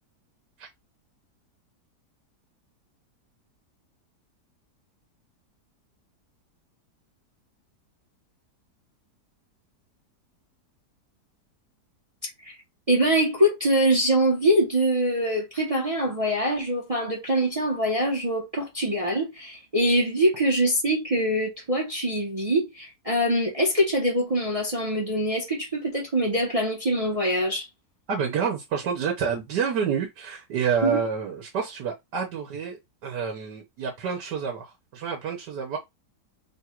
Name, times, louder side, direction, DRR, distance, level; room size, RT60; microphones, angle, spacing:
voice 1, 12.9-27.7 30.8-31.0, equal, 25° right, 0.9 m, -24 dB
voice 2, 28.1-35.8, right 6 dB, 85° right, 1.5 m, -28 dB
3.5 x 2.4 x 4.3 m
omnidirectional pair, 1.8 m